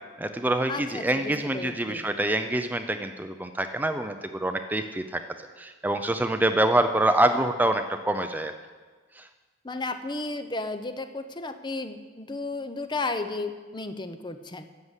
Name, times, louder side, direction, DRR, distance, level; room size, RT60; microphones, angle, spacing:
voice 1, 0.2-5.2 5.6-8.5 9.2-9.3, right 1 dB, 10° right, 7 dB, 0.5 m, -26 dB
voice 2, 0.7-2.1 9.6-14.7, left 3 dB, 25° left, 9 dB, 0.7 m, -33 dB
12.5 x 7.9 x 8.1 m, 1.4 s
head